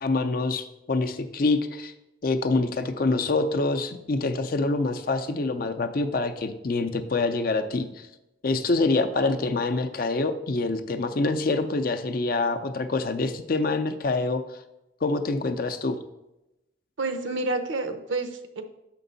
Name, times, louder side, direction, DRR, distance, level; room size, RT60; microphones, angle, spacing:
voice 1, 0.0-1.9 2.2-8.1 8.4-14.4 15.0-16.0, left 3 dB, 50° left, 8 dB, 0.5 m, -26 dB
voice 2, 17.0-18.6, right 3 dB, 75° right, 7 dB, 0.7 m, -29 dB
6.8 x 4.5 x 4.0 m, 0.93 s
head